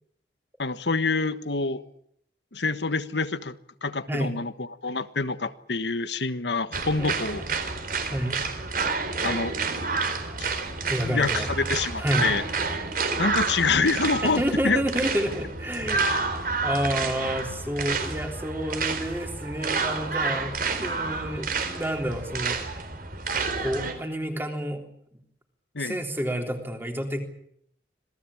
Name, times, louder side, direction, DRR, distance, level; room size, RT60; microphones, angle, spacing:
voice 1, 0.6-1.8 2.5-3.5 3.8-7.4 9.2-9.6 10.4-10.5 11.0-12.4 13.2-14.8 25.7-26.0, left 4 dB, 80° left, 12 dB, 1.4 m, -26 dB
sound 1, 6.7-23.9, right 4 dB, 50° right, 4.4 m, -29 dB
voice 2, 10.9-11.7 12.0-12.3 14.2-16.3 16.6-22.6 23.3-24.8 25.8-27.2, equal, 10° right, 4 dB, 3.6 m, -29 dB
26.5 x 19.0 x 8.6 m, 0.71 s
head